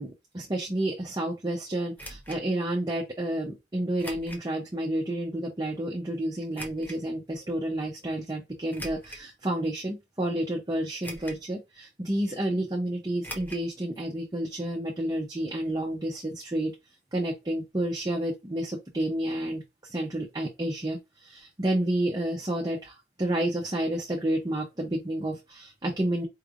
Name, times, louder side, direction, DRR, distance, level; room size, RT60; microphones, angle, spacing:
voice 1, 0.0-16.7 17.1-26.3, right 1 dB, 20° right, 0.8 m, -30 dB
sound 1, 2.0-2.4 4.0-4.5 5.0-5.1 6.5-7.0 8.7-9.3 9.9-10.0 11.0-11.5 11.8-11.9 13.2-13.7 13.9-14.0 14.3-14.4, equal, 10° left, 1.0 m, -41 dB
4.7 x 3.2 x 2.6 m
head